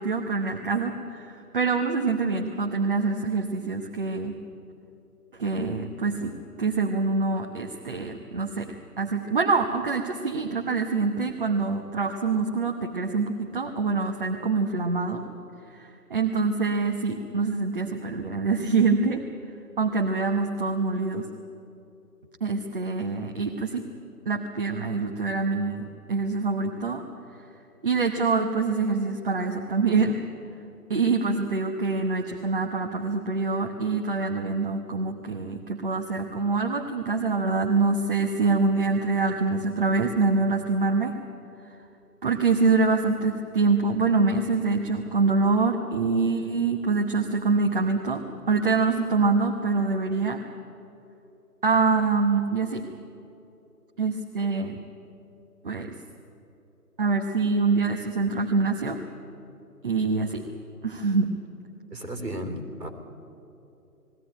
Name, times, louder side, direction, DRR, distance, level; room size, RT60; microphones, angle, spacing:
voice 1, 0.0-4.4 5.3-8.7 9.0-15.2 15.7-19.2 19.8-21.3 22.4-23.8 24.2-25.8 26.1-27.0 27.8-30.2 30.9-41.2 42.2-50.4 51.6-52.8 54.0-54.8 55.6-55.9 57.0-59.0 59.8-60.4 60.8-61.3, right 4 dB, 35° right, 2 dB, 1.1 m, -25 dB
voice 2, 61.9-62.9, equal, 85° right, 5 dB, 3.5 m, -34 dB
20.0 x 16.0 x 10.0 m, 2.9 s
figure-of-eight pair, 150°, 48 cm